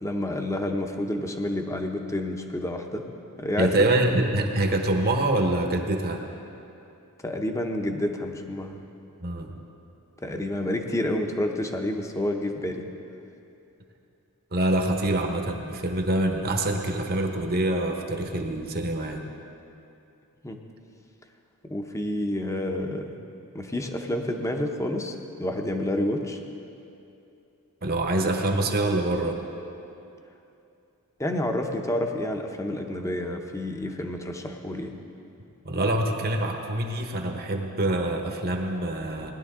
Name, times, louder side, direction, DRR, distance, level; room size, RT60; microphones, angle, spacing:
voice 1, 0.0-3.1 3.4-3.7 7.2-8.8 10.2-12.9 20.4-20.6 21.6-23.2 23.5-26.4 31.2-34.9, left 1 dB, 15° left, 4 dB, 0.7 m, -29 dB
voice 2, 3.6-6.2 9.2-9.6 14.5-19.2 27.8-29.4 35.6-39.3, right 1 dB, 45° right, 3 dB, 1.1 m, -25 dB
18.5 x 11.0 x 3.7 m, 2.7 s
head